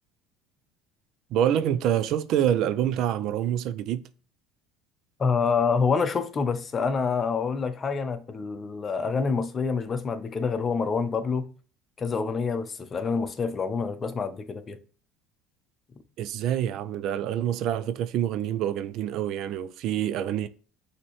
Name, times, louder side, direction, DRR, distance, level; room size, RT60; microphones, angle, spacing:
voice 1, 1.3-4.0 16.2-20.5, right 10 dB, 60° right, 0.4 m, -26 dB
voice 2, 5.2-11.5 12.0-14.8, left 5 dB, 30° left, 0.7 m, -27 dB
5.8 x 2.9 x 3.2 m
supercardioid pair, 90°, 0 cm